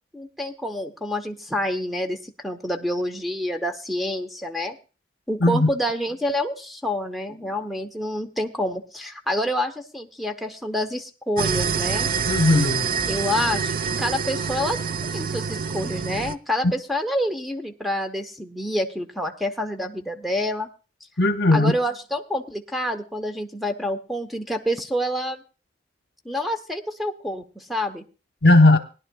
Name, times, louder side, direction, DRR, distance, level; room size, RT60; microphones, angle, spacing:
voice 1, 0.1-4.8 5.3-12.1 13.1-14.8 15.1-20.7 21.5-25.4 26.2-28.0, equal, ahead, 0.8 m, -27 dB
sound 1, 11.4-16.4, right 6 dB, 50° right, 0.5 m, -26 dB
voice 2, 12.3-12.9 21.2-21.7 28.4-28.8, left 2 dB, 60° left, 1.0 m, -16 dB
20.5 x 11.0 x 2.3 m
head